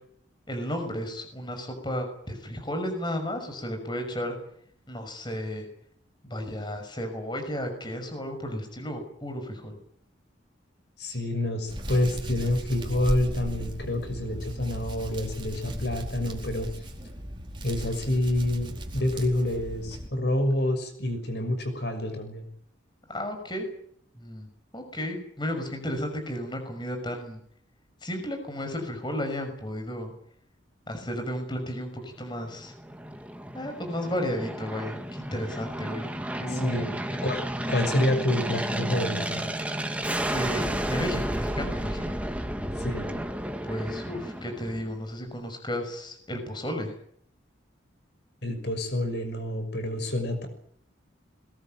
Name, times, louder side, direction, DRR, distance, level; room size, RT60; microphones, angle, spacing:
voice 1, 0.5-4.3 4.9-5.7 6.2-9.8 23.1-23.7 24.1-24.5 24.7-27.4 28.0-30.1 30.9-32.7 33.5-36.1 36.4-36.9 40.3-42.2 43.7-46.9, equal, 25° left, 5 dB, 6.1 m, -33 dB
voice 2, 11.0-16.7 17.6-22.4 36.5-39.4 42.8-43.1 48.4-50.5, left 1 dB, 60° left, 7 dB, 6.0 m, -28 dB
Hands, 11.7-20.1, equal, 25° right, 4.4 m, -36 dB
Aircraft, 32.3-45.0, right 1 dB, 5° right, 1.9 m, -32 dB
22.0 x 20.5 x 9.1 m, 0.65 s
head